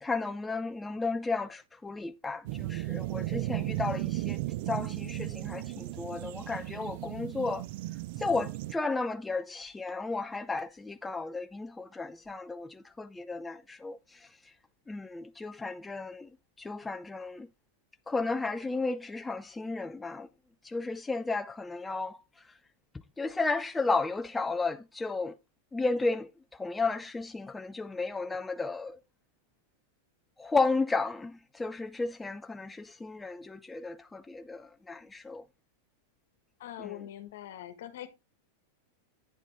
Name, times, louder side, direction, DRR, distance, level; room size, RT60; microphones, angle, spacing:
voice 1, 0.0-4.4 4.7-7.7 8.2-14.3 14.9-16.3 16.6-17.5 18.1-20.3 20.6-22.2 23.2-25.3 25.7-29.0 30.4-35.4 36.8-37.0, left 3 dB, 10° left, 0.4 m, -33 dB
sound 1, 2.5-8.7, right 17 dB, 60° right, 0.5 m, -35 dB
voice 2, 36.6-38.1, left 12 dB, 70° left, 1.3 m, -42 dB
9.1 x 5.1 x 3.4 m
supercardioid pair, 135°, 0 cm